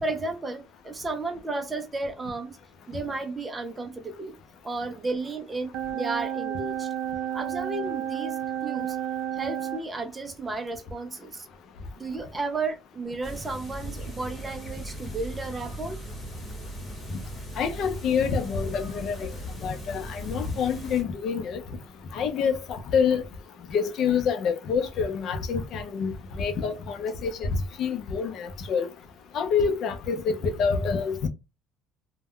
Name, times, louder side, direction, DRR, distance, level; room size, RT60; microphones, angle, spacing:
voice 1, 0.0-2.6 2.9-4.4 4.6-6.9 7.3-9.0 9.3-11.5 12.0-16.0, right 3 dB, 15° right, 0.4 m, -33 dB
sound 1, 5.7-9.8, right 10 dB, 70° right, 0.5 m, -31 dB
sound 2, 13.2-21.0, equal, 20° left, 1.1 m, -38 dB
voice 2, 17.6-19.3 19.6-21.6 22.1-23.2 23.7-28.9 29.3-31.3, left 6 dB, 50° left, 0.5 m, -27 dB
2.2 x 2.1 x 3.5 m
cardioid pair, 145°, 0 cm